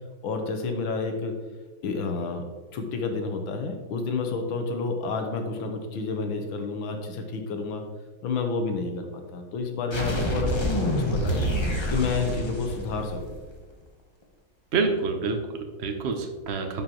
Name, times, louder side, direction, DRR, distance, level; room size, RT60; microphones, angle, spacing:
voice 1, 0.2-1.3 1.8-2.4 2.7-7.8 8.2-11.5 11.9-13.2, left 4 dB, 80° left, 5 dB, 1.7 m, -30 dB
sound 1, 9.9-13.6, equal, 30° left, 0.5 m, -27 dB
voice 2, 14.7-16.8, right 4 dB, 70° right, 5 dB, 0.6 m, -27 dB
10.5 x 5.2 x 3.0 m, 1.4 s
omnidirectional pair, 2.2 m